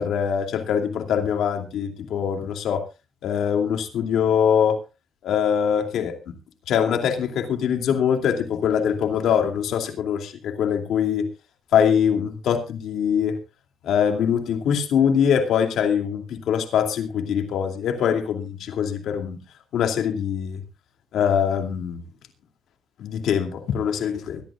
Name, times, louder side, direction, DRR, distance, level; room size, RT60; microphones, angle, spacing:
voice 1, 0.0-2.8 3.2-4.8 5.2-6.3 6.7-11.2 11.7-13.3 13.8-19.4 19.7-20.6 21.1-22.0 23.0-24.4, left 8 dB, 75° left, 4 dB, 2.6 m, -23 dB
24.0 x 11.5 x 2.4 m, 0.30 s
cardioid pair, 90°, 0 cm